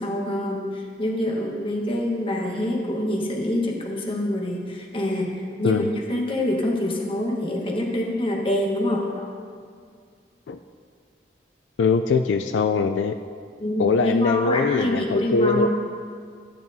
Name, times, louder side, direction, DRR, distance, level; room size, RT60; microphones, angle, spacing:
voice 1, 0.0-5.8 6.1-9.3 13.6-15.7, left 1 dB, 30° left, -1 dB, 1.2 m, -26 dB
voice 2, 11.8-13.2 13.8-15.7, left 4 dB, 80° left, 7 dB, 0.3 m, -22 dB
13.5 x 8.8 x 2.7 m, 2.1 s
head